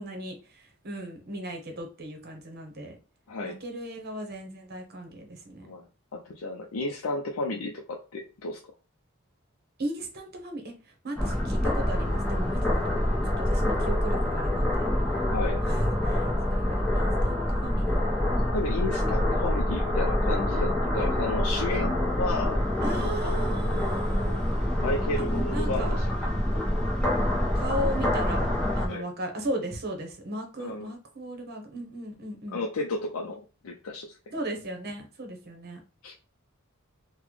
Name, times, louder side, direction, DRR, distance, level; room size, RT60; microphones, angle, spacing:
voice 1, 0.0-3.0 3.4-5.7 9.8-10.7 11.0-12.7 13.3-14.9 15.6-18.0 22.8-24.7 25.5-25.9 27.5-28.5 28.8-32.6 34.3-35.8, right 1 dB, 50° right, 3 dB, 0.9 m, -36 dB
voice 2, 3.3-3.6 5.6-5.9 6.1-8.6 15.3-15.6 18.5-22.6 23.0-23.1 24.8-26.1 28.9-29.1 30.6-30.9 32.5-34.2 36.0-36.1, left 2 dB, 80° left, 1 dB, 0.5 m, -32 dB
sound 1, 11.2-28.9, left 1 dB, 5° left, 0.8 m, -26 dB
3.9 x 2.1 x 3.0 m, 0.33 s
head